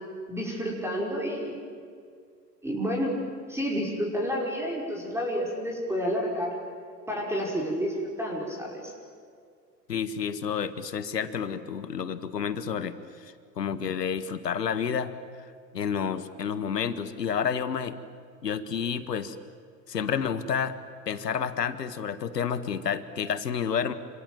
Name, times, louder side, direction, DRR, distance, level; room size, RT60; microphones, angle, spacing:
voice 1, 0.3-1.6 2.6-3.2 3.5-6.5 7.1-8.9, equal, 5° right, -2 dB, 5.4 m, -30 dB
voice 2, 9.9-15.1 15.4-17.9 18.4-19.4 19.9-20.8 21.0-23.9, left 7 dB, 70° left, 13 dB, 1.7 m, -30 dB
29.0 x 26.5 x 7.7 m, 2.2 s
figure-of-eight pair, 90°, 50 cm